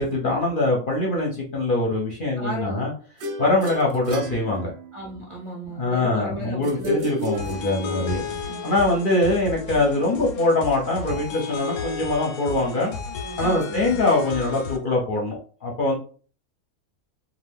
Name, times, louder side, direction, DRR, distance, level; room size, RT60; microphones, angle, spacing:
voice 1, 0.0-2.9 3.4-4.7 5.6-8.2 8.6-12.9 13.4-15.9, left 2 dB, 50° left, -2 dB, 0.6 m, -23 dB
voice 2, 2.4-2.9 4.9-7.1 7.9-8.7 13.4-13.9, right 1 dB, 40° right, -4 dB, 0.4 m, -35 dB
sound 1, 3.2-5.1 6.6-8.2, equal, 65° right, 0.8 m, -31 dB
sound 2, 7.4-14.8, left 5 dB, 90° left, 1.1 m, -33 dB
2.5 x 2.4 x 3.4 m, 0.40 s
omnidirectional pair, 1.5 m